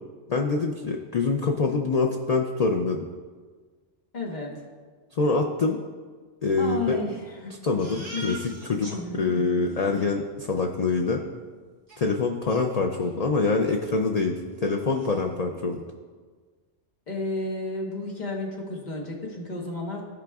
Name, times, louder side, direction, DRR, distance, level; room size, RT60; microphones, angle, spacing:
voice 1, 0.3-3.1 5.1-5.8 6.4-7.0 7.6-11.2 12.0-15.8, left 4 dB, 70° left, 2 dB, 0.3 m, -25 dB
voice 2, 4.1-4.5 6.6-7.5 8.1-8.4 8.8-9.6 17.1-20.1, left 2 dB, 40° left, -1 dB, 1.2 m, -32 dB
Crying sobbing, 7.8-9.0 9.4-9.5 9.7-10.1 11.9-12.0 12.5-13.3 13.6-13.8 14.1-14.2 14.6-15.2, right 2 dB, 70° right, 1.9 m, -43 dB
14.0 x 4.9 x 2.3 m, 1.5 s
omnidirectional pair, 1.2 m